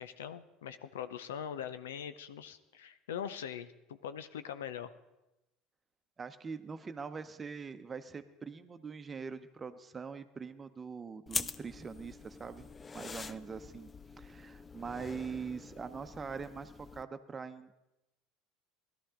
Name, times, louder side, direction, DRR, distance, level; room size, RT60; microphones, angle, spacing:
voice 1, 0.0-4.9, left 8 dB, 85° left, 12 dB, 0.6 m, -42 dB
voice 2, 6.2-12.7 12.9-13.9 14.2-17.8, right 5 dB, 25° right, 10 dB, 0.9 m, -43 dB
sound 1, 11.3-17.0, left 4 dB, 25° left, 0.5 m, -44 dB
17.0 x 12.5 x 3.8 m, 0.97 s
hypercardioid pair, 80°, 0 cm